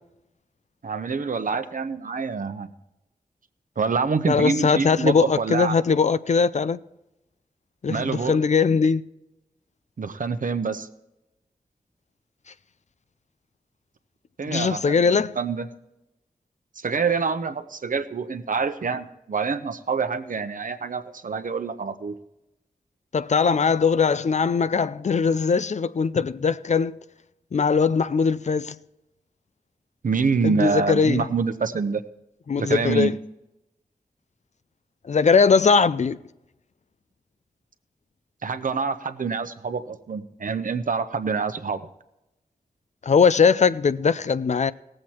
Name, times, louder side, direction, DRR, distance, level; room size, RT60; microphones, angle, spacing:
voice 1, 0.8-2.7 3.8-5.8 7.9-8.4 10.0-10.9 14.4-15.7 16.8-22.2 30.0-32.0 32.6-33.1 38.4-41.8, right 5 dB, 65° right, 0.8 m, -26 dB
voice 2, 4.3-6.8 7.8-9.0 14.4-15.4 23.1-27.0 27.5-28.8 30.4-31.3 32.5-33.1 35.1-36.2 43.0-44.7, left 5 dB, 50° left, 0.4 m, -20 dB
17.5 x 7.7 x 4.4 m
wide cardioid pair, 60°, 15 cm